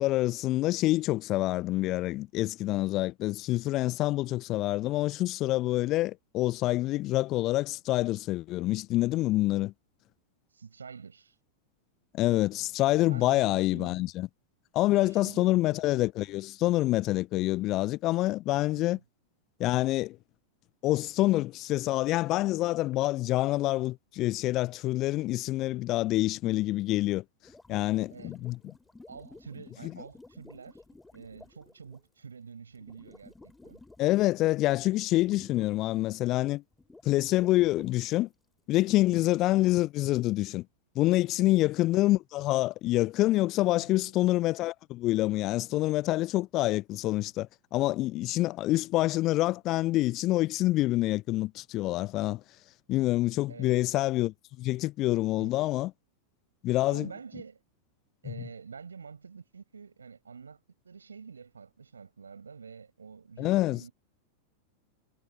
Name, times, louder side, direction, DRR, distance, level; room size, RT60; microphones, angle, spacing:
voice 1, 0.0-9.7 12.1-14.3 14.7-19.0 19.6-20.2 20.8-27.2 27.7-28.6 34.0-36.6 37.0-38.3 38.7-40.6 41.0-52.4 52.9-55.9 56.6-57.1 63.4-63.8, left 17 dB, 35° left, 0.6 m, -27 dB
voice 2, 10.5-11.4 13.0-14.1 15.0-15.8 18.8-19.0 28.1-28.3 29.1-30.8 31.1-33.8 39.1-39.3 41.4-41.6 43.8-44.1 53.5-53.8 55.4-55.5 56.9-57.6 58.2-60.6 60.8-63.9, right 5 dB, 75° right, 7.8 m, -47 dB
sound 1, 27.4-32.0 32.8-34.3 34.6-35.9 36.3-36.4 36.8-38.1 38.9-39.6, left 2 dB, 10° left, 3.2 m, -52 dB
figure-of-eight pair, 90°, 0 cm